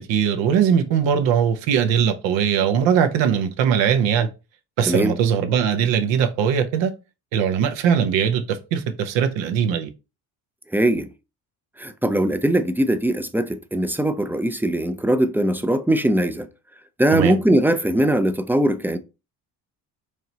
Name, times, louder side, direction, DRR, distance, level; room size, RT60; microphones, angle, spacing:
voice 1, 0.0-4.3 4.8-6.9 7.3-9.9 17.1-17.4, right 8 dB, 85° right, 0.8 m, -20 dB
voice 2, 10.7-11.1 11.8-16.5 17.0-19.0, right 1 dB, 5° right, 0.3 m, -20 dB
4.8 x 2.9 x 2.7 m
cardioid pair, 80°, 44 cm